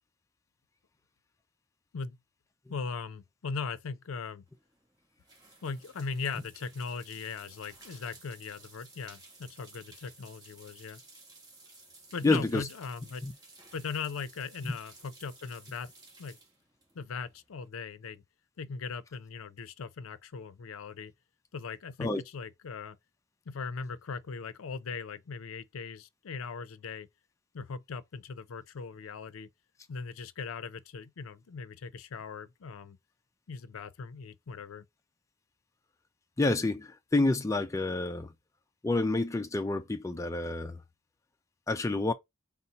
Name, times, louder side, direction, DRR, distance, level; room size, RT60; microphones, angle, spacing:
voice 1, 2.7-4.5 5.6-11.0 12.1-13.2 13.7-15.9 16.2-16.4 16.9-18.2 18.6-21.1 21.5-23.0 23.5-27.1 27.5-29.5 29.9-33.0 33.5-34.9, left 5 dB, 85° left, 0.5 m, -39 dB
sound 1, 4.5-17.7, right 2 dB, 20° right, 1.2 m, -55 dB
voice 2, 12.2-12.6 13.2-13.3 14.6-14.7 22.0-22.2 36.4-38.3 38.8-40.8 41.7-42.1, left 2 dB, 15° left, 0.4 m, -28 dB
4.2 x 2.0 x 3.9 m
head